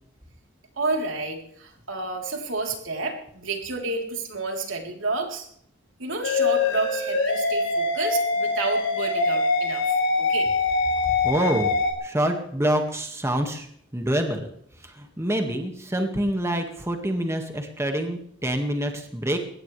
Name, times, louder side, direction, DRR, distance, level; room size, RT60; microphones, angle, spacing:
voice 1, 0.8-5.5 6.0-10.5, right 3 dB, 80° right, 2 dB, 3.7 m, -30 dB
sound 1, 6.2-11.9, left 3 dB, 70° left, 4.6 m, -23 dB
voice 2, 11.2-11.7 12.0-13.7 13.9-14.5 14.8-19.4, right 1 dB, 15° right, 4 dB, 1.9 m, -26 dB
21.5 x 18.0 x 3.4 m, 0.67 s
head